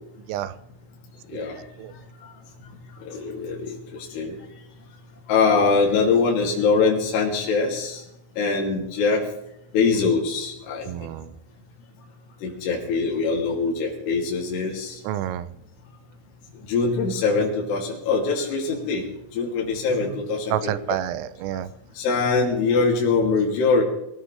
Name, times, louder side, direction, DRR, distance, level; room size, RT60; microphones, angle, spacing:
voice 1, 3.1-3.7 4.1-4.4 5.3-8.0 8.4-9.2 9.7-10.9 12.4-15.0 16.7-19.0 19.3-21.0 22.0-23.8, left 4 dB, 60° left, -3 dB, 4.7 m, -23 dB
voice 2, 10.9-11.4 15.1-15.5 20.5-21.7, right 12 dB, 85° right, 14 dB, 3.4 m, -29 dB
24.0 x 17.5 x 3.4 m, 0.81 s
omnidirectional pair, 5.8 m